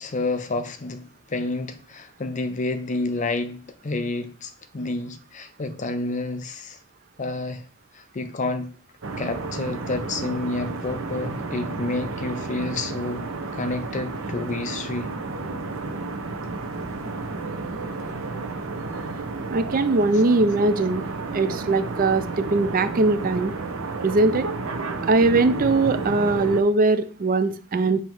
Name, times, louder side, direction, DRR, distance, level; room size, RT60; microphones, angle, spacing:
voice 1, 0.0-6.8 7.2-7.6 7.9-8.8 9.2-13.3 13.5-15.1, left 2 dB, 35° left, 0.5 m, -29 dB
sound 1, 9.0-26.6, right 3 dB, 60° right, 0.8 m, -31 dB
voice 2, 19.5-21.0 21.3-23.5 24.0-24.5 25.0-28.0, right 3 dB, 40° right, 0.4 m, -21 dB
7.3 x 2.8 x 4.5 m
head